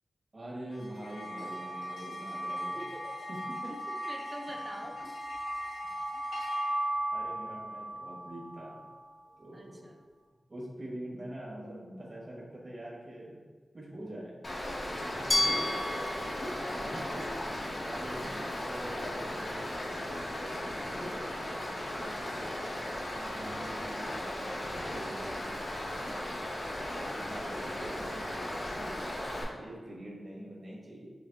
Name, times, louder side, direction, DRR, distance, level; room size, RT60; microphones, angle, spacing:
voice 1, 0.3-2.8 3.3-3.7 7.1-8.8 9.4-9.9 10.5-13.4 13.7-14.3 14.6-14.7 15.1-15.8 16.6-19.7 20.5-20.6 20.9-22.7 23.1-26.1 26.6-26.7 27.0-28.4 28.7-29.2 29.5-31.1, right 1 dB, 50° right, -5 dB, 1.4 m, -44 dB
sound 1, 0.7-9.4, right 1 dB, 90° left, 0.6 m, -37 dB
voice 2, 2.8-3.3 3.7-3.8 4.1-5.1 6.6-6.8 9.5-10.0 16.1-16.8 20.6-20.9, right 1 dB, 25° right, 0 dB, 0.7 m, -46 dB
Stream, 14.4-29.4, left 1 dB, 55° left, 1.0 m, -37 dB
Glass, 15.3-18.2, left 1 dB, 30° left, 0.4 m, -33 dB
6.2 x 2.5 x 2.3 m, 1.5 s
cardioid pair, 45°, 0 cm